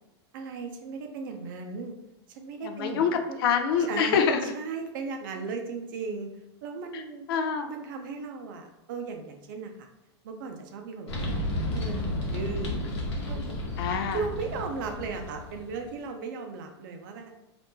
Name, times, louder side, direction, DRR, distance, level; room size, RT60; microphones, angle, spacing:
voice 1, 0.3-1.9 2.3-3.4 3.8-6.3 6.6-7.3 7.6-9.9 10.2-11.3 11.7-12.7 13.3-13.4 14.1-17.3, right 4 dB, 45° right, 4 dB, 0.5 m, -36 dB
voice 2, 2.6-3.1 3.4-4.5 6.9-7.0 7.3-7.7 13.8-14.2, left 7 dB, 55° left, 6 dB, 0.4 m, -25 dB
sound 1, 11.1-15.9, left 1 dB, 75° left, 1.0 m, -32 dB
2.7 x 2.5 x 3.5 m, 0.91 s
supercardioid pair, 165°, 14 cm